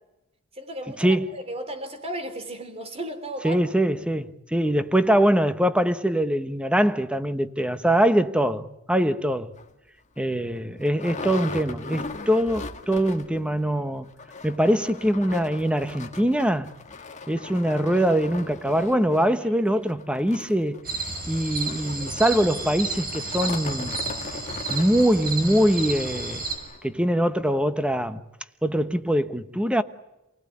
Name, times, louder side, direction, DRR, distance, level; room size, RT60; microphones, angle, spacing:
voice 1, 0.5-3.6 19.4-19.5 19.8-19.9, right 1 dB, 30° right, 3.8 m, -35 dB
voice 2, 3.4-9.5 10.2-14.1 14.4-16.7 17.3-20.8 21.3-24.0 24.7-26.4 26.8-28.2 28.6-29.8, equal, 5° right, 1.1 m, -23 dB
sound 1, 9.5-9.7 10.2-10.3 10.5-13.4 13.7-13.8 14.1-26.9 27.5-27.6 27.9-28.0, left 3 dB, 35° left, 1.9 m, -39 dB
sound 2, 20.8-26.6, right 3 dB, 45° right, 5.9 m, -32 dB
28.0 x 18.5 x 9.7 m
head